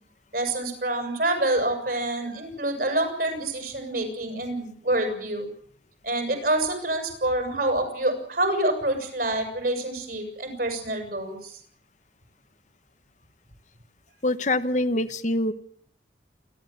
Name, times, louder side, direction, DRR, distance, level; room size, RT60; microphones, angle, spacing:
voice 1, 0.3-5.5 6.0-11.6, right 1 dB, 55° right, 5 dB, 8.0 m, -27 dB
voice 2, 14.2-15.5, left 1 dB, 40° left, 11 dB, 1.1 m, -24 dB
29.0 x 13.0 x 9.4 m, 0.63 s
head